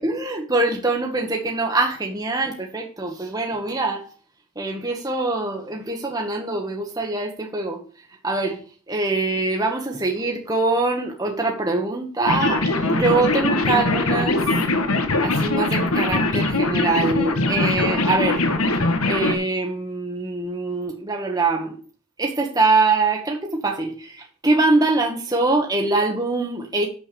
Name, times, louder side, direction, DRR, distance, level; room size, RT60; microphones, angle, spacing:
voice 1, 0.0-4.0 4.5-7.8 8.2-8.6 8.9-14.4 15.2-18.4 18.7-21.8 22.2-26.9, right 3 dB, 15° right, 1 dB, 1.2 m, -23 dB
sound 1, 12.3-19.3, left 2 dB, 80° left, 1.6 m, -21 dB
9.1 x 6.9 x 6.8 m, 0.41 s
head